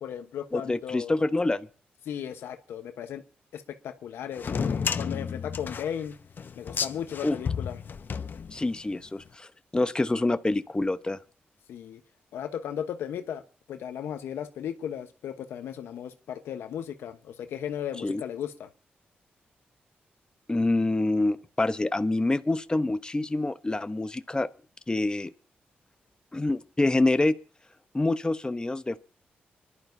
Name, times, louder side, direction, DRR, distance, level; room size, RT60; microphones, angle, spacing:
voice 1, 0.0-1.2 2.1-3.2 3.5-6.2 6.5-7.8 11.7-12.0 12.3-13.4 13.7-18.7, left 9 dB, 85° left, 1.0 m, -36 dB
voice 2, 0.5-1.7 7.2-7.4 8.5-11.2 18.0-18.2 20.5-24.5 24.9-25.3 26.3-27.4 27.9-29.0, left 2 dB, 20° left, 0.8 m, -26 dB
sound 1, 4.4-8.9, left 6 dB, 55° left, 0.8 m, -32 dB
24.5 x 11.5 x 2.7 m
supercardioid pair, 55°, 4 cm